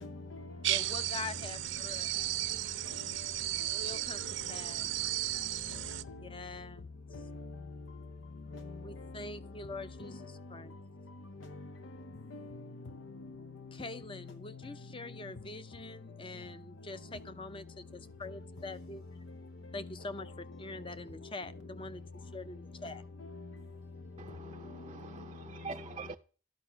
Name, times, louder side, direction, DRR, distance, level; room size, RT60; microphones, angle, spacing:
voice 1, 0.0-0.9 1.2-1.3 2.1-2.2 2.9-3.3 3.6-4.7 5.7-6.3 7.1-7.6 8.5-9.3 9.7-10.5 11.4-12.0 12.3-14.6 15.1-15.2 18.8-18.9 19.3-19.4 19.6-20.5 20.7-20.9 22.8-22.9 23.2-23.6 24.3-24.9 25.2-25.3 25.7-25.8, left 3 dB, 75° left, 0.8 m, -46 dB
sound 1, 0.6-6.0, right 14 dB, 70° right, 0.6 m, -35 dB
voice 2, 0.7-2.1 3.7-5.2 6.2-6.9 8.8-10.8 13.7-19.0 19.7-22.0 22.3-23.0, left 3 dB, 25° left, 0.7 m, -44 dB
voice 3, 24.2-26.2, right 4 dB, 30° right, 0.5 m, -45 dB
13.0 x 9.7 x 5.8 m
head